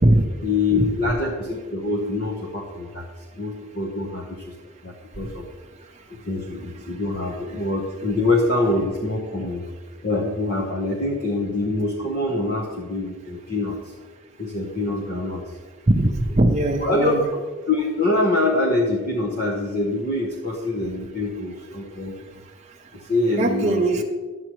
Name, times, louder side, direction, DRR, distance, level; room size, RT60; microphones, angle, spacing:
voice 1, 0.4-3.0 3.3-4.5 4.8-5.5 6.3-9.6 10.0-13.8 14.4-15.4 16.8-17.1 17.7-22.1 22.9-24.0, left 2 dB, 40° left, -2 dB, 0.9 m, -25 dB
voice 2, 15.9-17.2 23.4-24.0, right 1 dB, 30° right, -1 dB, 0.6 m, -19 dB
11.0 x 7.7 x 3.0 m, 1.4 s
head